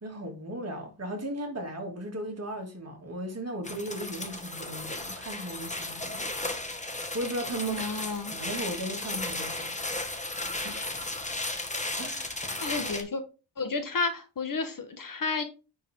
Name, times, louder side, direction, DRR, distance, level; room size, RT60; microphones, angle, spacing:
voice 1, 0.0-6.3 7.1-7.9 8.3-9.9 10.6-10.9 12.0-12.5, right 1 dB, 30° right, 2.7 m, -36 dB
sound 1, 3.6-13.0, left 2 dB, 15° left, 1.4 m, -35 dB
voice 2, 7.7-8.4 12.6-13.2 13.6-15.4, left 4 dB, 45° left, 1.3 m, -31 dB
9.8 x 4.6 x 3.7 m
cardioid pair, 105°, 46 cm